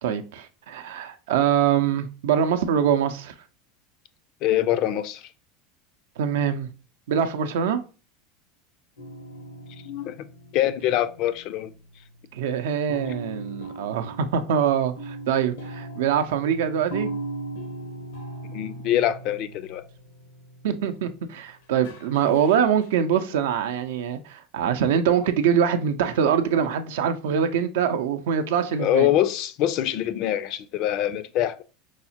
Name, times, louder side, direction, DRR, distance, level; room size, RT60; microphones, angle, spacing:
voice 1, 0.0-3.3 6.2-6.7 7.1-7.8 12.3-17.1 20.6-29.1, right 8 dB, 80° right, 0.4 m, -24 dB
voice 2, 4.4-5.3 9.8-10.2 10.5-11.7 18.5-19.9 28.8-31.6, left 12 dB, 55° left, 0.4 m, -24 dB
sound 1, 9.0-11.9 12.2-12.3 12.9-21.4 21.8-22.9, right 2 dB, 85° left, 0.8 m, -38 dB
4.6 x 2.1 x 2.7 m
hypercardioid pair, 100°, 0 cm